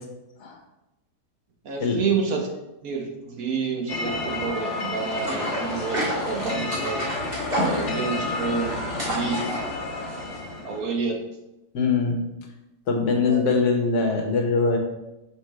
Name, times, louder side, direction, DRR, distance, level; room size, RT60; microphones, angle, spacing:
voice 1, 1.6-2.5 2.8-7.0 7.6-9.4 10.6-11.2 13.3-13.4, right 5 dB, 65° right, 2 dB, 1.3 m, -29 dB
sound 1, 3.9-10.9, left 2 dB, 50° left, 1.2 m, -30 dB
sound 2, 5.2-10.4, right 1 dB, 35° right, 2.1 m, -30 dB
voice 2, 11.7-12.2 12.9-14.8, left 4 dB, 75° left, 3 dB, 1.5 m, -22 dB
5.9 x 5.5 x 3.1 m, 0.94 s
omnidirectional pair, 1.8 m